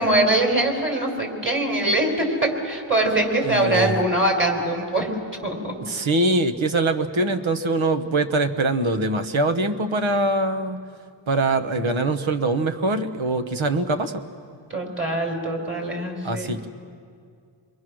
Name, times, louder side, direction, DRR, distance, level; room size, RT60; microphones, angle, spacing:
voice 1, 0.0-5.1 5.4-5.8 14.7-16.5, right 1 dB, 25° right, 2 dB, 4.3 m, -23 dB
voice 2, 3.5-3.9 5.8-10.8 11.3-14.2 16.2-16.7, right 2 dB, 85° right, 8 dB, 1.2 m, -23 dB
28.5 x 22.5 x 6.3 m, 2.3 s
wide cardioid pair, 65°, 46 cm